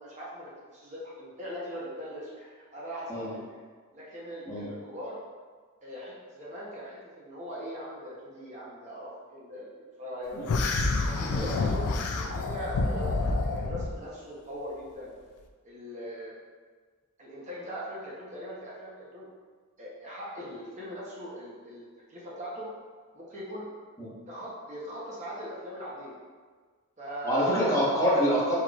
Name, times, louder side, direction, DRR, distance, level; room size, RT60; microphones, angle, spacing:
voice 1, 0.0-3.4 3.9-5.2 5.8-9.7 10.0-10.4 11.0-15.1 15.6-16.3 17.2-19.3 19.8-22.7 23.1-23.7 24.3-26.1 27.0-27.7, equal, 30° right, -6 dB, 0.9 m, -40 dB
sound 1, 10.5-13.9, left 3 dB, 80° left, 0.4 m, -28 dB
voice 2, 27.2-28.6, equal, 15° left, -8 dB, 1.2 m, -26 dB
4.7 x 4.3 x 2.4 m, 1.5 s
head